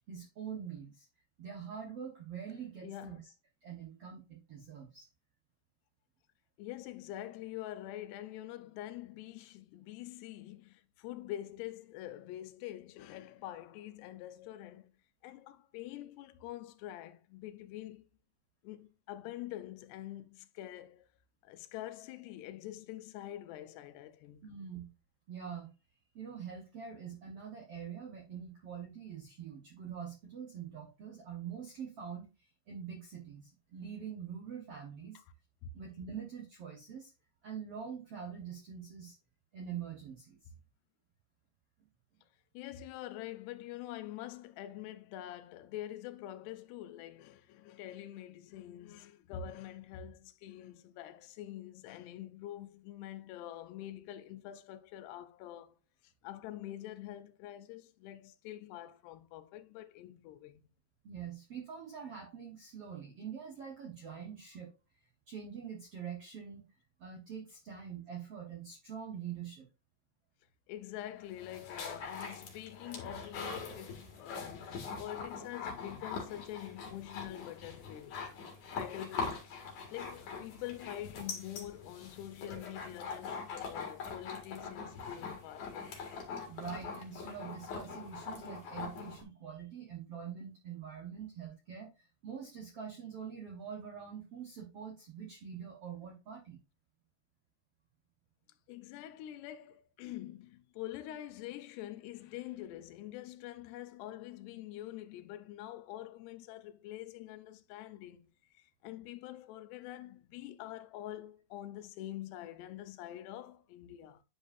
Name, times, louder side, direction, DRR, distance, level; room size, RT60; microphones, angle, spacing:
voice 1, 0.1-1.1 1.4-3.3 3.6-5.1 24.4-24.9 25.3-25.7 26.1-35.2 35.7-37.1 37.4-39.1 39.5-40.4 61.0-64.7 65.3-66.6 67.0-69.7 86.5-96.6, right 7 dB, 80° right, 1.3 m, -44 dB
voice 2, 2.8-3.2 6.6-14.9 15.2-18.1 18.6-21.1 21.4-24.5 35.1-35.2 35.6-35.7 40.5-40.6 42.5-55.8 56.0-60.6 70.7-78.2 78.7-79.4 79.9-86.4 98.7-114.2, left 13 dB, 80° left, 2.8 m, -45 dB
sound 1, 71.2-89.2, left 5 dB, 55° left, 2.9 m, -43 dB
10.5 x 5.0 x 2.6 m
omnidirectional pair, 4.8 m